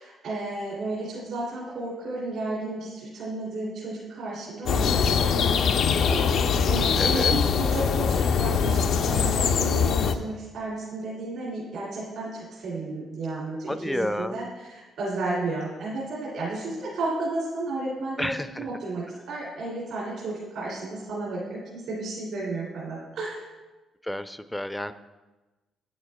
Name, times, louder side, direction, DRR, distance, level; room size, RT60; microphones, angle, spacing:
voice 1, 0.0-5.7 6.0-18.3 18.6-23.4, right 2 dB, 80° right, -6 dB, 2.4 m, -33 dB
sound 1, 4.7-10.2, left 6 dB, 70° left, 0.4 m, -22 dB
voice 2, 6.9-7.3 13.7-14.4 18.2-18.7 24.0-24.9, left 1 dB, 5° left, 11 dB, 0.4 m, -30 dB
9.5 x 8.8 x 2.2 m, 1.2 s
cardioid pair, 90°, 0 cm